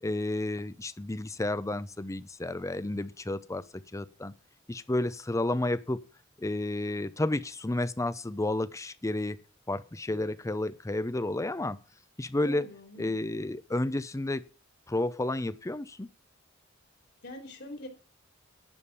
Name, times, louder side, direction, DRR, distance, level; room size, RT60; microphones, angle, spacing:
voice 1, 0.0-3.6 3.9-4.3 4.7-6.0 6.4-9.4 9.7-11.8 12.2-12.7 13.0-14.4 14.9-16.1, left 2 dB, 15° left, 0.6 m, -31 dB
voice 2, 12.5-13.2 17.2-17.9, left 1 dB, 60° left, 3.2 m, -43 dB
11.0 x 5.3 x 7.1 m
head